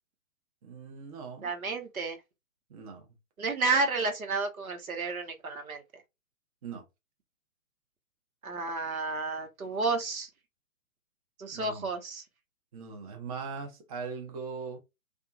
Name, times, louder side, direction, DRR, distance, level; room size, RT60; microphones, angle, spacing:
voice 1, 0.6-1.5 2.7-3.1 6.6-6.8 11.5-11.9 12.7-14.8, right 5 dB, 30° right, 0.5 m, -40 dB
voice 2, 1.4-2.2 3.4-5.8 8.4-10.3 11.4-12.2, right 3 dB, 85° right, 0.9 m, -31 dB
2.6 x 2.3 x 2.4 m
figure-of-eight pair, 125°, 41 cm